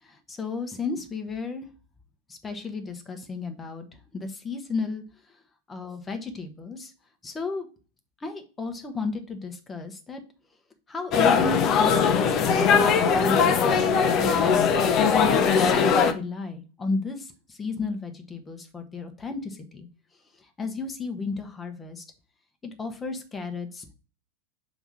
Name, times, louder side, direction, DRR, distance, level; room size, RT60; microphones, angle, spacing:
voice 1, 0.1-1.7 2.3-3.8 4.1-5.0 5.7-6.9 7.2-7.7 8.2-10.2 10.9-14.7 15.2-19.9 20.6-22.0 22.6-23.9, left 4 dB, 15° left, 6 dB, 1.0 m, -33 dB
sound 1, 11.1-16.1, left 6 dB, 35° left, 0.6 m, -20 dB
6.0 x 3.5 x 5.5 m, 0.36 s
figure-of-eight pair, 90°, 0 cm